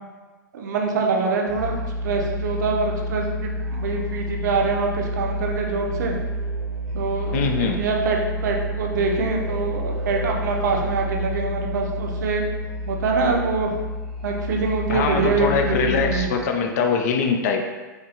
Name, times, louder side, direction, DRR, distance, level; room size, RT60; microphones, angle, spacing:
voice 1, 0.5-1.8 2.0-6.2 6.9-12.4 12.9-13.7 14.2-16.3, right 4 dB, 60° right, 1 dB, 0.5 m, -24 dB
Musical instrument, 1.5-16.5, equal, 5° left, 0.7 m, -29 dB
voice 2, 7.3-7.9 14.9-17.6, left 5 dB, 50° left, 4 dB, 0.4 m, -23 dB
3.1 x 2.4 x 2.8 m, 1.3 s
figure-of-eight pair, 100°, 11 cm